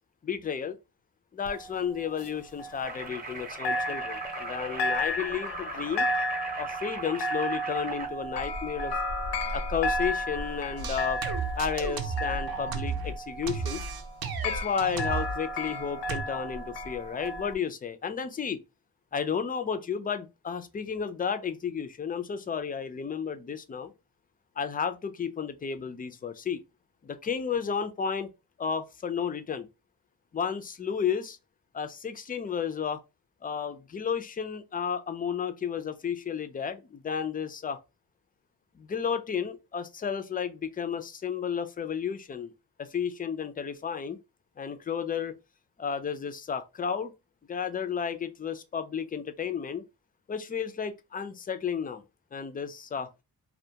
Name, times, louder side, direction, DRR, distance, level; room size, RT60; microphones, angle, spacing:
voice 1, 0.2-0.8 1.3-6.1 6.6-8.9 9.5-11.2 11.6-13.9 14.4-18.6 19.1-23.9 24.6-26.6 27.0-28.3 28.6-29.7 30.3-31.4 31.7-33.0 33.4-37.8 38.7-42.5 42.8-44.2 44.6-45.3 45.8-47.1 47.5-49.8 50.3-52.0 52.3-53.1, left 7 dB, 25° left, 0.3 m, -32 dB
sound 1, 1.5-3.4 3.6-17.5, left 1 dB, 75° left, 0.6 m, -33 dB
sound 2, 2.8-8.1, right 3 dB, 20° right, 0.6 m, -39 dB
sound 3, 10.8-13.2 13.5-15.4 16.1-16.2, right 5 dB, 60° right, 0.6 m, -33 dB
2.2 x 2.2 x 2.7 m
cardioid pair, 85°, 42 cm